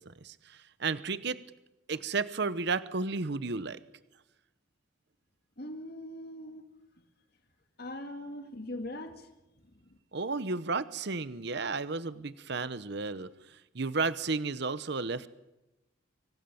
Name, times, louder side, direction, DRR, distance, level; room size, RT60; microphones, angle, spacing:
voice 1, 0.0-1.4 1.9-3.8 10.1-15.3, right 4 dB, 60° right, 15 dB, 0.9 m, -33 dB
voice 2, 5.6-6.7 7.8-9.3 9.8-10.0, left 1 dB, 55° left, 6 dB, 2.3 m, -41 dB
25.5 x 24.5 x 7.1 m, 0.99 s
head